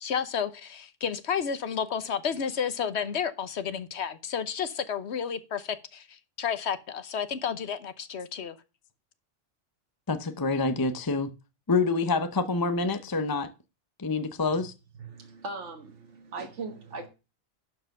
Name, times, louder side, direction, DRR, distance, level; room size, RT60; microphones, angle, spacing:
voice 1, 0.0-8.6, left 7 dB, 70° left, 1.2 m, -31 dB
voice 2, 10.1-11.3 11.7-13.5 14.0-14.7, left 3 dB, 20° left, 0.7 m, -27 dB
voice 3, 15.0-17.1, right 3 dB, 80° right, 1.8 m, -39 dB
12.0 x 4.7 x 6.5 m
omnidirectional pair, 1.2 m